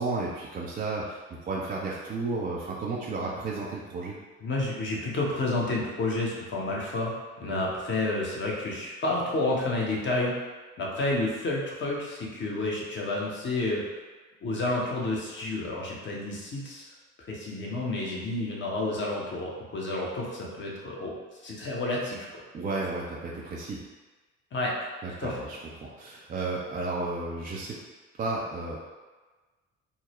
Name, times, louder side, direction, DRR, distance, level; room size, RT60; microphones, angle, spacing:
voice 1, 0.0-4.1 7.5-7.6 22.5-23.8 25.0-27.8 28.2-28.8, right 3 dB, 20° right, -4 dB, 0.4 m, -33 dB
voice 2, 4.4-7.1 7.4-10.3 10.8-13.8 14.4-16.9 17.2-21.1 21.4-22.4 24.5-24.9 25.2-25.4, left 2 dB, 30° left, -3 dB, 0.9 m, -30 dB
3.8 x 2.1 x 2.9 m, 1.3 s
figure-of-eight pair, 55°, 39 cm